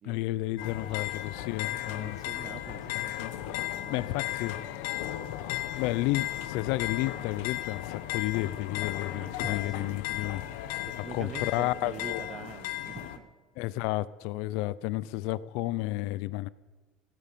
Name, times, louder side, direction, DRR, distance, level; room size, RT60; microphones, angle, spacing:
voice 1, 0.0-2.2 2.9-3.3 3.9-4.6 5.8-10.4 11.0-12.2 13.6-16.5, left 17 dB, 70° left, 0.5 m, -32 dB
sound 1, 0.6-13.2, left 14 dB, 90° left, 1.1 m, -35 dB
voice 2, 0.8-1.1 1.7-4.7 5.0-5.2 9.1-10.0 10.3-10.6 11.0-13.4, right 7 dB, 30° right, 0.7 m, -45 dB
17.0 x 9.1 x 6.8 m
cardioid pair, 165°, 0 cm